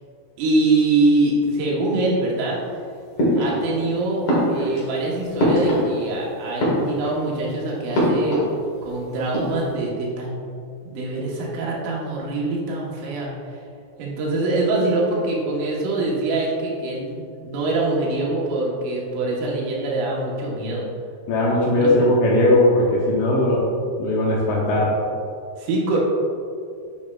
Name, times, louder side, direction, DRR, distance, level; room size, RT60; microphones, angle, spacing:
voice 1, 0.4-2.6 3.3-8.5 8.8-10.4 10.8-13.3 14.0-20.9 21.7-21.9 25.6-26.0, right 2 dB, 80° right, -4 dB, 3.8 m, -24 dB
sound 1, 3.2-3.9 4.2-6.2 6.5-7.3 7.9-8.9 9.2-9.7, equal, 55° left, 1.4 m, -22 dB
voice 2, 21.3-25.0, left 1 dB, 75° left, -4 dB, 2.5 m, -19 dB
9.6 x 7.1 x 2.4 m, 2.4 s
omnidirectional pair, 5.7 m